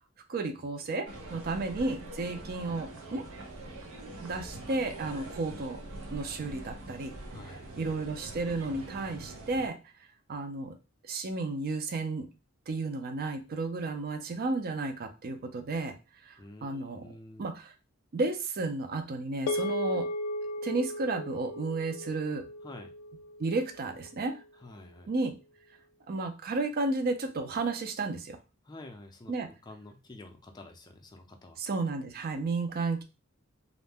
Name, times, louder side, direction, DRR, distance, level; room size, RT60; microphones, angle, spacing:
voice 1, 0.3-3.2 4.2-5.8 6.1-7.2 7.8-9.8 10.3-10.8 11.0-12.3 12.7-16.0 16.2-17.1 17.4-17.7 18.1-20.1 20.6-22.5 23.4-24.4 25.1-25.4 26.1-28.4 29.3-29.5 31.6-33.0, right 3 dB, 45° right, 7 dB, 0.4 m, -33 dB
sound 1, 1.1-9.7, right 2 dB, 85° right, 0.7 m, -44 dB
voice 2, 7.3-7.8 16.4-17.5 22.6-22.9 24.6-25.1 28.6-31.6, left 2 dB, 20° left, 3 dB, 0.4 m, -49 dB
sound 2, 19.5-24.0, left 1 dB, 85° left, 0.3 m, -36 dB
2.5 x 2.1 x 3.4 m, 0.30 s
head